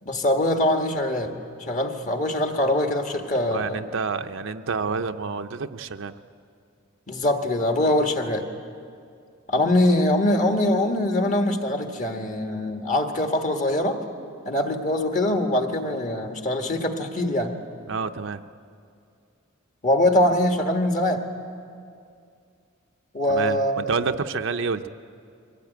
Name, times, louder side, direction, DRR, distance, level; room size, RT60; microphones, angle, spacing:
voice 1, 0.0-3.8 7.1-8.5 9.5-14.0 14.4-17.5 19.8-21.3 23.1-23.8, left 1 dB, 35° left, 4 dB, 1.7 m, -23 dB
voice 2, 3.5-6.1 17.9-18.4 23.3-24.9, right 5 dB, 65° right, 7 dB, 0.6 m, -28 dB
23.0 x 17.0 x 9.3 m, 2.4 s
head